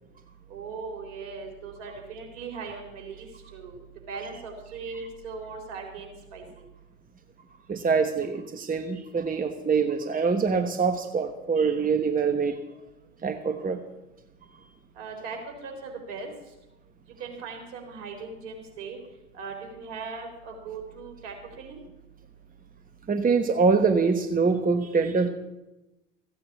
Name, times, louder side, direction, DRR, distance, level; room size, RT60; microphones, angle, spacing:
voice 1, 0.5-3.8 4.1-6.4 15.0-16.3 17.2-19.0 19.3-21.8, right 4 dB, 65° right, 2 dB, 3.9 m, -39 dB
voice 2, 7.7-12.6 13.2-13.8 23.1-25.3, right 5 dB, 20° right, 7 dB, 1.2 m, -24 dB
15.0 x 9.0 x 7.3 m, 0.98 s
figure-of-eight pair, 65°, 37 cm